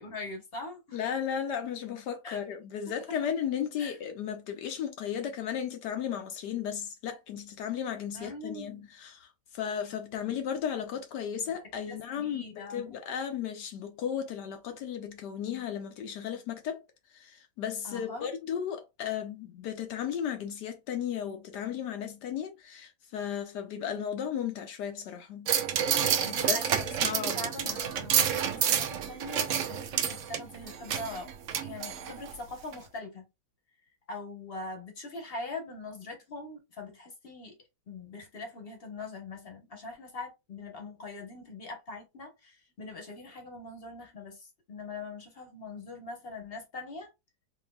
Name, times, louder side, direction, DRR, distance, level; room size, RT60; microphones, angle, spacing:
voice 1, 0.0-1.0 2.2-2.4 3.8-3.9 8.1-8.9 11.5-11.6 11.9-13.0 17.8-18.3 26.2-31.3 31.6-33.2 34.1-37.6 37.9-47.1, left 2 dB, 40° left, 1.0 m, -42 dB
voice 2, 0.9-16.8 17.1-25.6 26.5-26.6 27.0-27.8 28.3-28.6, left 8 dB, 70° left, 1.1 m, -35 dB
sound 1, 25.5-32.3 32.7-32.8, right 8 dB, 80° right, 0.6 m, -29 dB
4.2 x 3.2 x 2.2 m
omnidirectional pair, 2.0 m